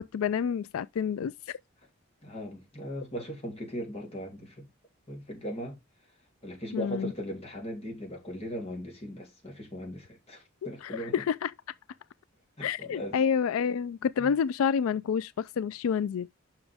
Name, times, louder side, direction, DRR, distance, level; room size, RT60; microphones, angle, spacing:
voice 1, 0.0-1.3 6.7-7.1 10.8-11.5 12.6-16.3, left 7 dB, 90° left, 0.3 m, -28 dB
voice 2, 2.2-4.7 5.1-5.8 6.4-11.3 12.6-13.2 14.2-14.3, equal, 30° left, 3.1 m, -38 dB
7.3 x 6.1 x 3.4 m
head